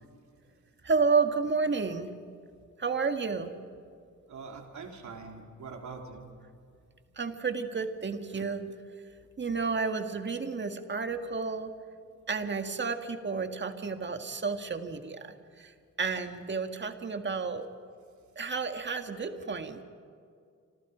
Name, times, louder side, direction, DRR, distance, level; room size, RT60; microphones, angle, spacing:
voice 1, 0.8-2.1 2.8-3.5 7.2-8.6 9.4-11.7 12.3-15.7 16.0-17.7 18.4-19.8, right 4 dB, 35° right, 6 dB, 1.9 m, -31 dB
voice 2, 4.3-6.3, right 4 dB, 65° right, 2 dB, 3.5 m, -43 dB
29.0 x 26.0 x 5.1 m, 2.3 s
wide cardioid pair, 125°, 31 cm